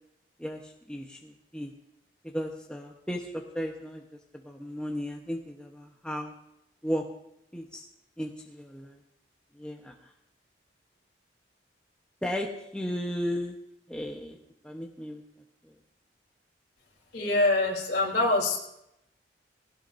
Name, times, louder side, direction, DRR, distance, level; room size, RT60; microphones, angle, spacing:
voice 1, 0.4-1.7 2.3-4.0 4.3-6.3 6.8-7.0 7.5-7.8 8.2-9.0 9.5-9.9 12.2-12.5 12.7-13.6 13.9-14.4 14.6-15.2 15.7-15.8, equal, 5° left, 0 dB, 0.9 m, -35 dB
voice 2, 17.1-18.6, left 2 dB, 60° left, 0 dB, 3.5 m, -24 dB
20.0 x 17.0 x 2.6 m, 0.81 s
head